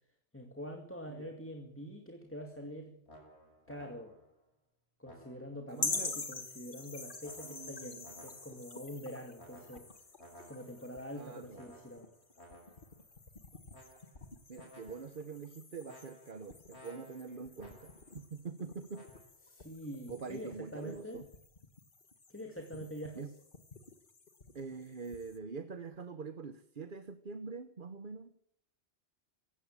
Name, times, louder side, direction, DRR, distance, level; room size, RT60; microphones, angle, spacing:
voice 1, 0.3-3.0 3.7-4.2 5.0-9.9 10.5-12.1 19.5-21.2 22.3-23.3, equal, 10° left, 4 dB, 2.3 m, -45 dB
voice 2, 1.1-1.4 5.7-6.2 7.4-8.1 11.1-11.7 14.5-19.1 20.1-21.3 23.1-23.3 24.5-28.3, right 4 dB, 50° right, 11 dB, 1.2 m, -45 dB
sound 1, 3.1-4.4 5.0-6.5 7.2-8.7 9.4-11.0 11.5-13.0 13.7-14.3 14.5-15.3 15.8-18.2 18.9-19.3, equal, 75° left, 7.1 m, -57 dB
sound 2, 5.8-25.4, left 3 dB, 50° left, 2.0 m, -46 dB
19.0 x 16.5 x 8.8 m, 0.71 s
omnidirectional pair, 1.1 m